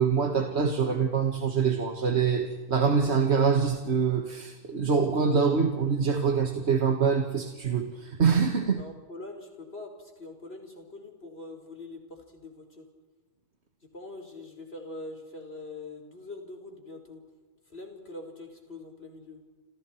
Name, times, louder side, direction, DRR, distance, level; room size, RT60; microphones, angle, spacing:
voice 1, 0.0-8.8, right 6 dB, 90° right, 4 dB, 2.0 m, -25 dB
voice 2, 8.6-12.0 12.3-12.8 13.9-17.2 17.7-19.4, left 2 dB, 70° left, 3 dB, 5.1 m, -43 dB
30.0 x 29.0 x 4.6 m, 1.3 s
omnidirectional pair, 1.1 m